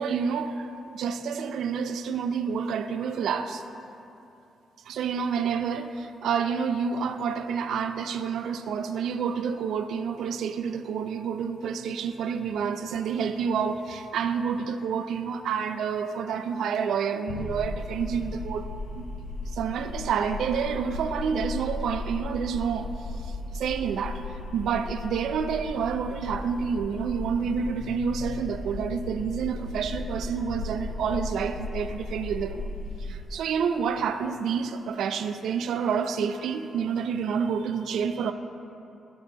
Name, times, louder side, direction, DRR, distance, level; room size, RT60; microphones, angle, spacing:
voice 1, 0.0-3.6 4.9-18.7 18.9-19.1 19.5-22.9 23.5-32.7 33.0-38.3, right 6 dB, 85° right, 0.3 m, -29 dB
sound 1, 17.3-33.3, left 2 dB, 85° left, 0.4 m, -36 dB
12.5 x 6.6 x 2.2 m
wide cardioid pair, 155°, 0 cm